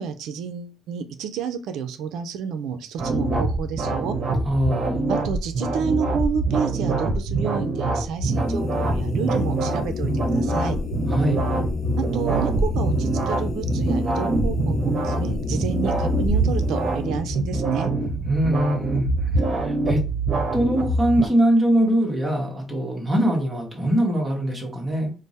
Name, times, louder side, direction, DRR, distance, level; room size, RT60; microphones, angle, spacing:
voice 1, 0.0-4.1 5.1-10.8 12.0-17.9, right 7 dB, 85° right, 9 dB, 0.4 m, -30 dB
sound 1, 3.0-21.3, right 3 dB, 50° right, 0.9 m, -24 dB
voice 2, 4.4-5.0 11.1-11.4 18.3-20.0 20.5-25.1, right 1 dB, 20° right, 0 dB, 1.1 m, -22 dB
sound 2, 8.1-19.5, left 5 dB, 45° left, 0.5 m, -31 dB
3.3 x 2.0 x 4.0 m, 0.33 s
cardioid pair, 90°, 0 cm